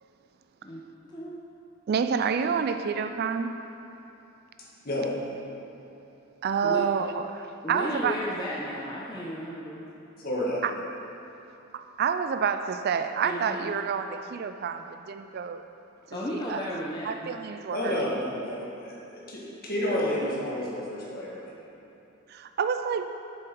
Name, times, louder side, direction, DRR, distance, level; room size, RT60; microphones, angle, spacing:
voice 1, 1.9-3.7 6.4-8.2 10.6-10.7 11.7-15.6 16.1-16.7 17.0-18.0 22.3-23.2, right 6 dB, 50° right, 9 dB, 0.3 m, -28 dB
voice 2, 7.6-9.8 13.2-13.7 16.1-17.1, equal, 20° left, -5 dB, 0.7 m, -34 dB
voice 3, 10.2-10.6 17.7-21.5, left 1 dB, 45° left, -5 dB, 1.8 m, -30 dB
7.8 x 7.1 x 4.7 m, 2.9 s
head